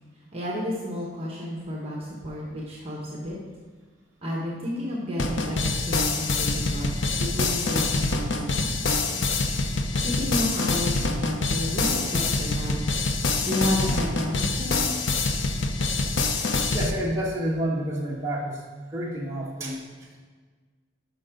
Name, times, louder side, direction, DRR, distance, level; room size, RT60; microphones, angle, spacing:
voice 1, 0.3-3.4 4.2-9.3 10.0-12.9 13.4-14.9, left 1 dB, 30° right, -4 dB, 1.4 m, -31 dB
sound 1, 5.2-16.9, left 3 dB, 75° left, 0.7 m, -25 dB
voice 2, 16.7-20.2, right 1 dB, 15° right, -5 dB, 1.6 m, -30 dB
11.5 x 5.8 x 3.9 m, 1.4 s
head